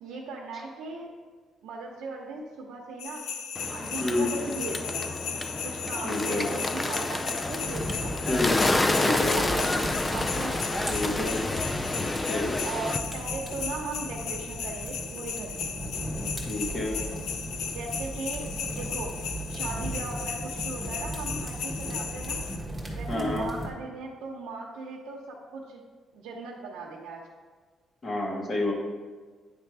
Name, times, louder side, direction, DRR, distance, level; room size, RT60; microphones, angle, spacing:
voice 1, 0.0-1.1 1.6-3.2 3.7-5.1 5.6-8.2 8.8-11.2 12.6-15.5 17.7-22.4 22.9-25.8 26.1-27.2, right 3 dB, 90° right, -3 dB, 0.8 m, -38 dB
sound 1, 3.0-22.6, left 6 dB, 85° left, 0.6 m, -36 dB
Bird, 3.5-13.0, left 2 dB, 20° left, 0.4 m, -29 dB
voice 2, 6.0-6.5 8.3-8.6 9.0-9.4 10.9-11.4 11.9-12.6 16.4-17.0 23.1-23.5 28.0-28.7, left 2 dB, 40° left, -2 dB, 1.8 m, -29 dB
sound 2, 7.6-23.7, right 1 dB, ahead, 1.6 m, -37 dB
9.7 x 3.3 x 4.7 m, 1.4 s
cardioid pair, 90°, 0 cm